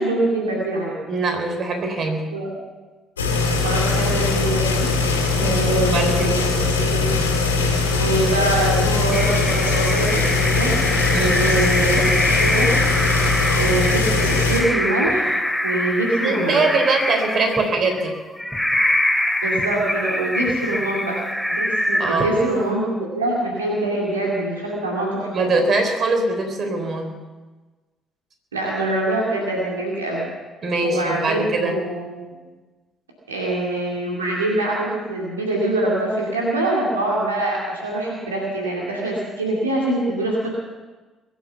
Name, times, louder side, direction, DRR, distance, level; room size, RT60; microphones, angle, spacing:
voice 1, 0.0-0.9 2.3-2.5 3.6-4.9 5.6-7.2 7.7-10.7 11.3-12.1 12.4-12.7 13.5-15.3 15.6-16.7 19.4-21.2 21.5-25.5 28.5-30.2 30.8-32.4 33.3-40.5, right 2 dB, 85° right, -3 dB, 2.3 m, -24 dB
voice 2, 1.1-2.3 5.4-6.4 11.1-11.4 16.2-18.1 22.0-22.4 25.3-27.1 30.6-31.8, right 3 dB, 50° right, 4 dB, 3.5 m, -22 dB
sound 1, 3.2-14.6, left 3 dB, 85° left, 2.3 m, -20 dB
sound 2, 9.1-22.6, left 1 dB, ahead, 2.2 m, -24 dB
22.0 x 9.1 x 7.0 m, 1.3 s
figure-of-eight pair, 45°, 0 cm